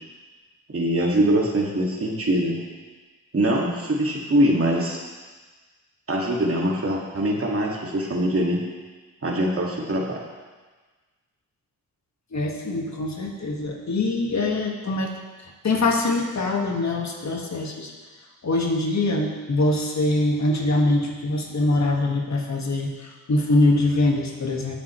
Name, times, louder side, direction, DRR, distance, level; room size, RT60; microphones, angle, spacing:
voice 1, 0.7-2.6 3.3-5.0 6.1-8.6 9.2-10.2, right 1 dB, 40° right, -2 dB, 2.0 m, -23 dB
voice 2, 12.3-15.1 15.4-17.9 18.4-24.8, left 2 dB, 50° left, 0 dB, 1.7 m, -23 dB
18.0 x 6.7 x 3.1 m, 1.4 s
cardioid pair, 75°, 36 cm